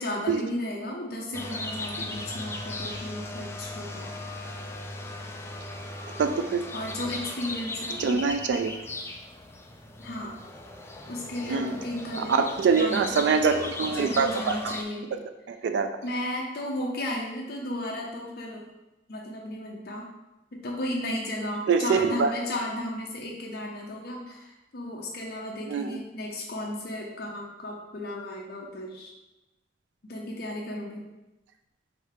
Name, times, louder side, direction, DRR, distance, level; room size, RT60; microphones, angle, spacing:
voice 1, 0.0-4.1 6.7-8.2 10.0-10.3 11.1-12.4 12.8-13.5 13.9-15.1 16.0-18.6 19.1-20.1 20.6-29.1 30.1-31.1, left 1 dB, 60° left, -2 dB, 0.6 m, -34 dB
sound 1, 1.3-14.8, left 2 dB, 15° left, 0.3 m, -38 dB
voice 2, 6.2-6.6 8.0-8.7 11.5-11.8 12.2-14.7 15.1-15.2 15.5-15.9 21.7-22.3 25.7-26.0, right 5 dB, 85° right, 7 dB, 0.3 m, -24 dB
3.2 x 3.2 x 4.8 m, 1.0 s
head